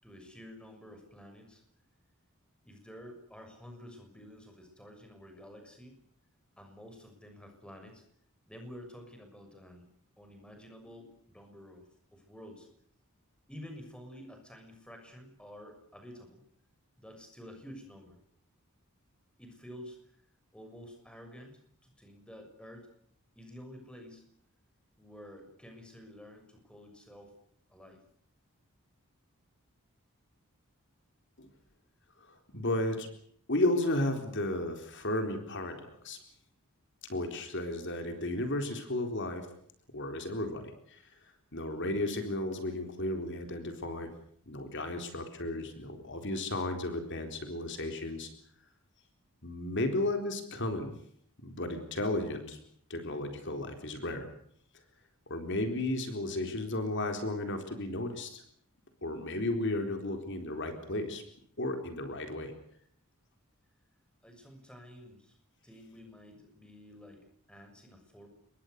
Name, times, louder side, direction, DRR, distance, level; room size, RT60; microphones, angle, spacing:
voice 1, 0.0-1.6 2.6-6.0 6.6-8.0 8.5-9.9 10.2-11.8 12.1-12.7 13.5-16.4 17.0-18.2 19.4-20.0 20.5-22.9 23.3-24.2 25.0-27.3 27.7-28.0 64.2-65.4 65.6-68.3, equal, 5° left, 4 dB, 6.6 m, -50 dB
voice 2, 32.3-33.1 33.5-36.2 37.0-39.5 39.9-41.0 41.5-44.1 44.5-48.3 49.4-50.9 51.4-52.6 52.9-54.3 55.3-58.4 59.0-61.2 61.6-62.5, left 1 dB, 55° left, 6 dB, 4.0 m, -34 dB
27.5 x 23.0 x 6.7 m, 0.65 s
head